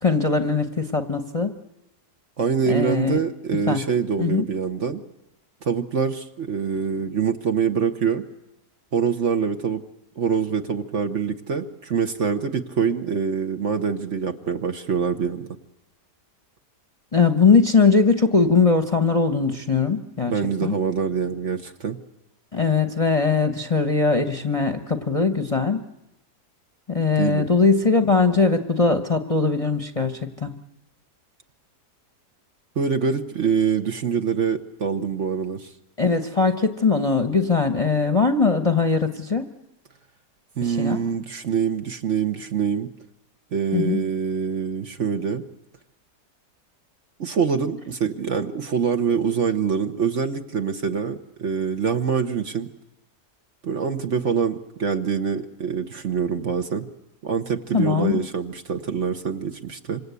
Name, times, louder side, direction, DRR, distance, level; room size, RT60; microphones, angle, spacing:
voice 1, 0.0-1.5 2.7-3.2 3.7-3.8 4.2-4.5 17.1-20.3 20.6-20.7 22.5-25.8 26.9-30.5 36.0-39.5 40.6-41.0 43.7-44.0 57.7-58.1, left 4 dB, 25° left, 6 dB, 1.0 m, -20 dB
voice 2, 2.4-5.0 5.6-8.2 8.9-9.8 10.2-15.5 20.3-22.0 27.2-27.5 32.8-35.7 40.6-42.9 43.5-45.4 47.2-52.7 53.6-56.9 57.2-60.0, right 6 dB, 50° right, 6 dB, 1.4 m, -25 dB
26.5 x 26.0 x 8.3 m, 0.92 s
omnidirectional pair, 1.8 m